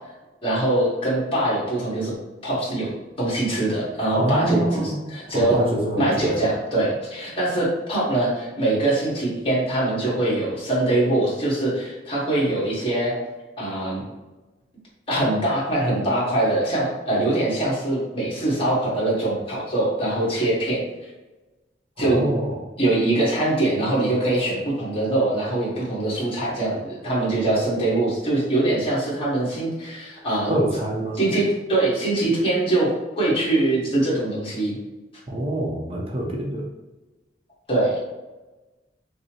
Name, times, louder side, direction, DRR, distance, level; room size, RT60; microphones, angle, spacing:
voice 1, 0.4-2.1 2.4-5.6 6.0-13.1 13.6-14.0 15.1-20.8 22.0-22.2 22.8-30.5 31.2-32.9 33.2-34.8 37.7-38.0, right 2 dB, 30° left, -6 dB, 1.4 m, -23 dB
voice 2, 4.2-5.0 5.3-6.3 22.0-22.6 30.5-31.2 35.3-36.7, right 1 dB, 30° right, -2 dB, 0.6 m, -25 dB
5.3 x 2.0 x 2.9 m, 1.1 s
head